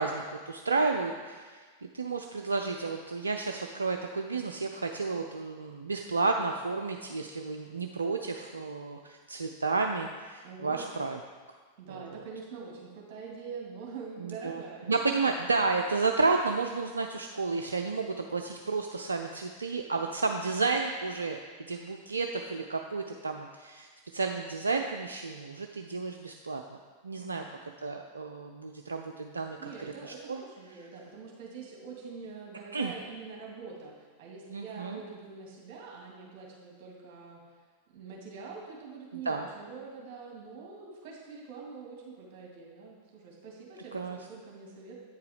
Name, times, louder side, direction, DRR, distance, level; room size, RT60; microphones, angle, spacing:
voice 1, 0.0-1.7 1.9-11.2 11.9-12.2 14.2-14.6 14.9-26.6 27.0-29.7 30.0-30.4 32.7-32.9 34.5-35.0 39.1-39.5 43.9-44.2, right 4 dB, 75° right, 4 dB, 0.3 m, -31 dB
voice 2, 10.4-10.9 11.8-14.9 27.1-27.6 29.6-37.4 37.9-45.0, right 5 dB, 45° right, -2 dB, 2.2 m, -45 dB
8.5 x 4.7 x 5.0 m, 1.5 s
figure-of-eight pair, 90°, 0 cm